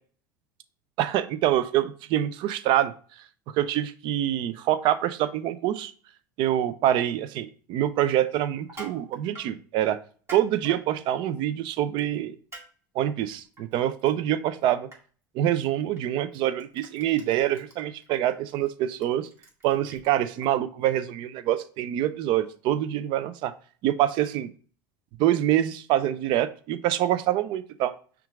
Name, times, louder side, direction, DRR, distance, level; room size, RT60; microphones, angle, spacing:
voice 1, 1.0-2.9 3.5-5.9 6.4-10.0 10.3-12.4 12.9-14.9 15.3-19.3 19.6-23.5 23.8-24.5 25.2-27.9, right 12 dB, 50° right, 13 dB, 0.5 m, -25 dB
Crushing, 8.6-9.5 10.1-10.8 12.0-12.2 12.5-12.7 13.0-14.1 14.5-14.6 14.9-15.0 15.9-16.0 16.3-20.5, right 2 dB, 25° right, 2.1 m, -45 dB
5.7 x 2.5 x 3.5 m, 0.41 s
hypercardioid pair, 80°, 10 cm